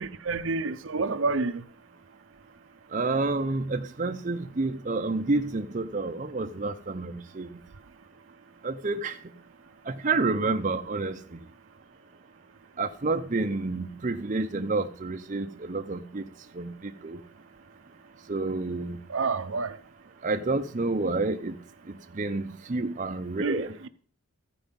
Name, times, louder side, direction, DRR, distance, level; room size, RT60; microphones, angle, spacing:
voice 1, 0.0-1.6 19.1-19.7 23.4-23.9, right 3 dB, 75° right, 0.7 m, -29 dB
voice 2, 2.9-7.5 8.6-9.1 9.9-11.2 12.8-16.2 16.6-16.7 17.0-17.2 18.3-19.0 20.2-21.5 22.2-23.7, right 3 dB, 40° right, 0.6 m, -29 dB
14.5 x 5.0 x 5.2 m
head